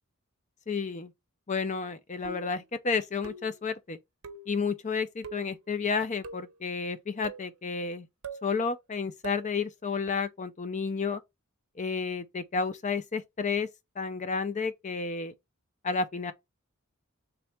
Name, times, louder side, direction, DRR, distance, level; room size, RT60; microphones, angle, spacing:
voice 1, 0.7-1.1 1.5-4.0 4.5-8.1 8.4-11.2 11.8-13.7 14.0-15.3 15.8-16.3, left 5 dB, 35° left, 0.5 m, -31 dB
sound 1, 2.2-2.6 3.2-3.6 4.2-4.6 5.2-5.5 6.2-6.6 7.2-7.5 8.2-8.5 9.2-9.5, right 4 dB, 65° right, 0.7 m, -42 dB
4.3 x 3.3 x 3.3 m
head